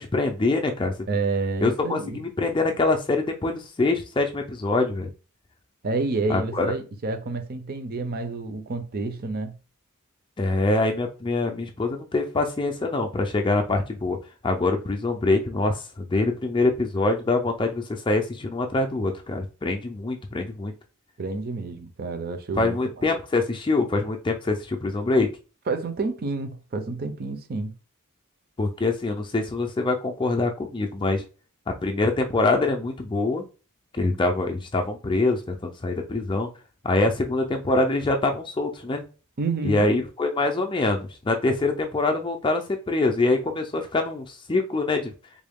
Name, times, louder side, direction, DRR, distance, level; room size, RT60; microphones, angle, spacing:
voice 1, 0.0-0.9 1.6-5.1 6.3-6.7 10.4-14.2 14.4-20.7 22.6-25.3 28.6-31.2 31.7-33.4 33.9-36.5 36.8-39.0 39.6-45.1, left 2 dB, 20° left, 0.4 m, -24 dB
voice 2, 1.1-2.2 5.8-9.6 21.2-22.8 25.7-27.7 39.4-39.9, right 3 dB, 45° right, 0.5 m, -29 dB
3.7 x 2.2 x 3.5 m
head